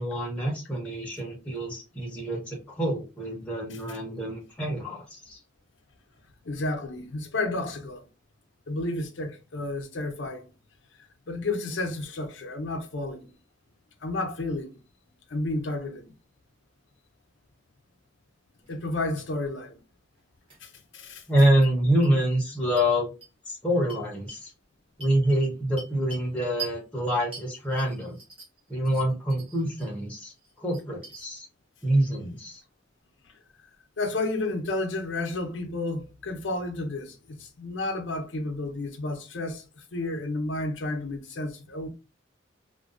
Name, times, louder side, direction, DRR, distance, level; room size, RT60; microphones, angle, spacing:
voice 1, 0.0-5.4 21.3-23.1 23.5-24.5 25.0-28.2 28.7-30.3 30.6-31.5 31.8-32.6, equal, 5° left, 0.6 m, -26 dB
voice 2, 6.4-8.1 8.7-10.5 11.3-13.3 14.0-14.8 15.3-16.1 18.7-19.8 20.6-21.2 34.0-41.9, left 2 dB, 70° left, 0.6 m, -31 dB
sound 1, 18.6-18.9 19.2-19.3 20.5-20.6 21.6-21.7 22.0-22.1 22.8-22.9 23.2-23.3 23.9-24.5 25.0-26.3 26.6-26.8 27.3-28.6 28.9-29.9 30.3-31.2, right 5 dB, 25° right, 1.0 m, -43 dB
2.4 x 2.2 x 2.4 m
head